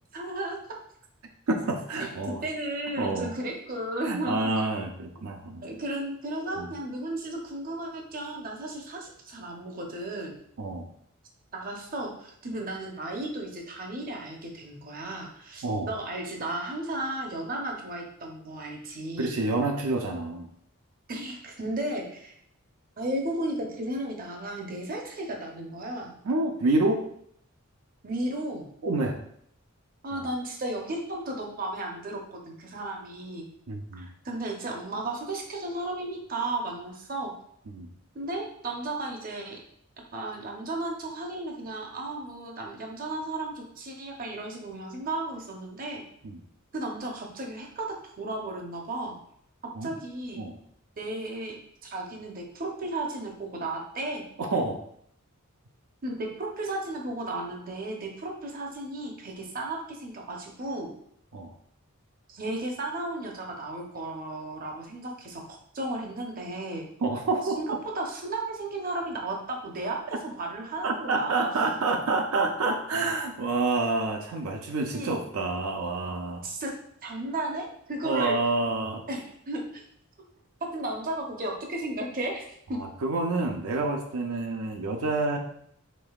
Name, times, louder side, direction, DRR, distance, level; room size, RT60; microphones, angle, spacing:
voice 1, 0.1-0.6 2.0-2.1 2.4-4.5 5.6-10.4 11.5-19.3 21.1-22.3 23.0-26.1 28.0-28.7 30.0-33.5 34.0-37.3 38.1-39.6 40.1-46.0 46.7-47.9 48.2-49.1 49.8-50.4 51.0-51.6 51.8-54.3 56.0-60.9 62.3-66.8 67.6-71.5 74.9-75.1 76.4-76.7 77.0-78.4 79.1-79.8 80.7-82.8, right 2 dB, 40° right, 1 dB, 0.7 m, -34 dB
voice 2, 1.5-2.4 3.0-3.3 4.0-5.7 6.6-6.7 10.6-10.9 15.6-15.9 19.2-20.5 26.2-27.1 28.8-29.2 30.1-30.4 33.7-34.1 37.7-37.9 46.2-46.4 49.7-49.9 50.4-50.6 54.4-54.8 61.3-61.5 67.0-67.6 70.8-76.5 78.0-79.1 82.7-85.4, right 3 dB, 80° right, 3 dB, 0.5 m, -28 dB
5.3 x 3.7 x 2.3 m, 0.68 s
head